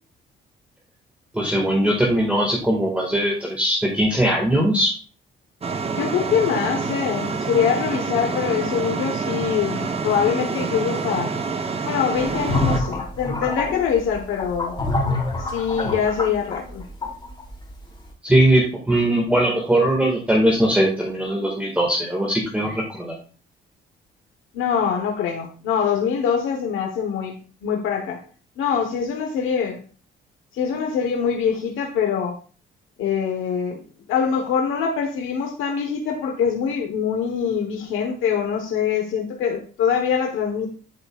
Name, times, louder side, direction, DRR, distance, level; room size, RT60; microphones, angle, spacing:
voice 1, 1.3-4.9 18.2-23.1, right 1 dB, 5° right, -2 dB, 1.9 m, -20 dB
sound 1, 5.6-12.8, right 4 dB, 30° right, 0.9 m, -27 dB
voice 2, 6.0-11.3 11.8-14.7 15.4-16.8 24.5-27.4 27.6-28.2 28.6-29.8 30.5-32.4 33.0-33.8 34.1-40.7, left 7 dB, 90° left, 3 dB, 1.3 m, -24 dB
sound 2, 12.2-17.5, left 2 dB, 25° left, 3.3 m, -26 dB
11.0 x 5.4 x 2.5 m, 0.40 s
cardioid pair, 90°, 20 cm